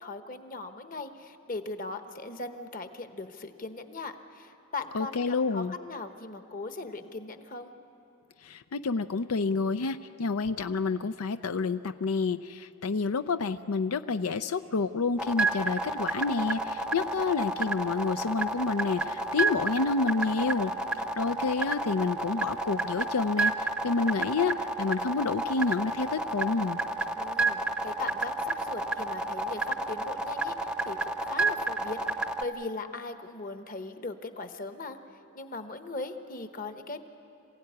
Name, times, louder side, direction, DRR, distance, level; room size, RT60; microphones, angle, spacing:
voice 1, 0.0-7.7 27.1-35.0 35.3-37.0, left 3 dB, 40° left, 7 dB, 1.1 m, -39 dB
voice 2, 4.9-5.7 8.4-20.7 21.2-26.8, left 4 dB, 90° left, 10 dB, 0.5 m, -29 dB
sound 1, 15.2-32.4, right 2 dB, 5° right, 0.7 m, -30 dB
26.5 x 16.5 x 9.6 m, 2.8 s
head